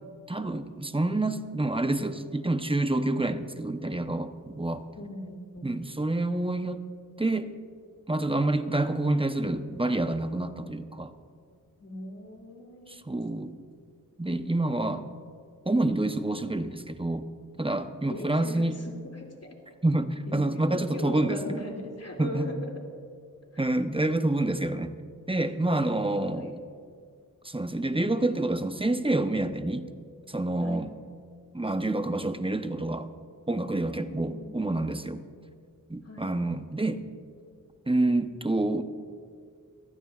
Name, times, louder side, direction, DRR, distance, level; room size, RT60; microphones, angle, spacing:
voice 1, 0.3-4.8 5.6-6.8 7.2-7.5 8.1-11.1 12.9-13.5 14.2-15.1 15.7-17.3 17.6-18.8 19.8-21.6 22.2-22.5 23.6-25.0 25.3-26.6 27.4-29.9 30.3-30.9 31.5-33.1 33.5-35.2 35.9-37.0 37.9-38.8, right 2 dB, 15° right, 9 dB, 0.8 m, -28 dB
voice 2, 4.9-6.0 11.8-13.0 18.1-19.6 20.3-20.4 20.7-22.7 23.5-23.6 25.6-26.5 30.6-30.9 34.0-34.9 36.0-36.3, left 1 dB, 45° left, 1 dB, 2.6 m, -40 dB
23.0 x 14.5 x 2.4 m, 2.1 s
wide cardioid pair, 45°, 34 cm